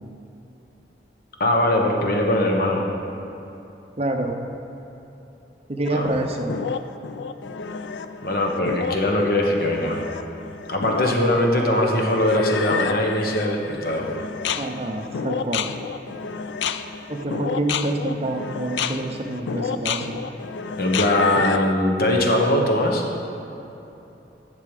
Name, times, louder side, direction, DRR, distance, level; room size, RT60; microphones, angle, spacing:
voice 1, 1.4-2.8 5.9-6.1 8.2-10.0 10.7-14.1 20.8-23.0, left 1 dB, 60° left, 1 dB, 1.2 m, -21 dB
voice 2, 4.0-4.4 5.7-6.6 11.2-11.4 14.5-15.7 17.1-20.2, right 1 dB, 35° right, 3 dB, 0.7 m, -27 dB
sound 1, 5.8-21.7, left 5 dB, 85° left, 0.4 m, -30 dB
10.5 x 6.8 x 4.9 m, 3.0 s
head